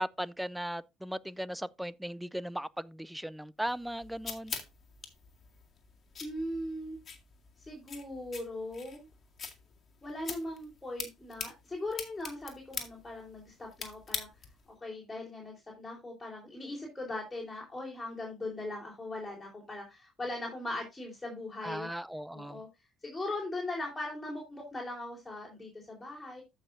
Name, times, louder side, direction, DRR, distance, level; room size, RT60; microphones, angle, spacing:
voice 1, 0.0-4.6 21.6-22.6, equal, 5° right, 0.5 m, -37 dB
sound 1, 3.7-14.7, left 6 dB, 40° left, 2.1 m, -44 dB
voice 2, 6.2-7.0 7.6-9.1 10.0-14.3 14.8-21.9 22.3-22.7 23.0-26.4, left 2 dB, 15° left, 4.0 m, -39 dB
14.0 x 5.7 x 2.6 m
hypercardioid pair, 70°, 0 cm